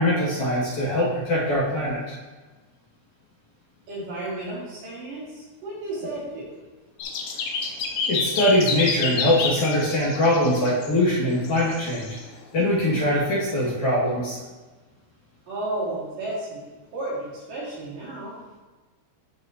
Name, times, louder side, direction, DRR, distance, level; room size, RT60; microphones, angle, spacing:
voice 1, 0.0-2.2 8.1-12.1 12.5-14.4, left 1 dB, 50° left, -8 dB, 3.2 m, -22 dB
voice 2, 3.9-6.5 15.5-16.6 16.9-18.4, right 2 dB, 55° right, -8 dB, 3.9 m, -32 dB
sound 1, 7.0-11.0 11.4-12.2, left 5 dB, 80° left, 1.9 m, -29 dB
12.5 x 4.8 x 2.9 m, 1.3 s
omnidirectional pair, 4.8 m